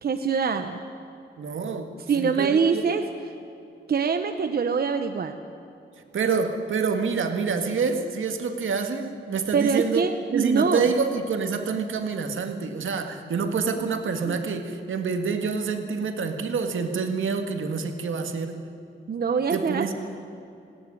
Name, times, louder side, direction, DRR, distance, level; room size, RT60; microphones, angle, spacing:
voice 1, 0.0-0.8 2.1-3.0 3.9-5.3 9.5-10.9 14.3-14.4 19.1-19.9, right 5 dB, 50° right, 7 dB, 0.9 m, -24 dB
voice 2, 1.4-2.9 6.1-10.1 10.3-18.6 19.5-19.9, right 5 dB, 80° right, 6 dB, 2.0 m, -27 dB
19.0 x 17.5 x 9.9 m, 2.7 s
wide cardioid pair, 165°, 20 cm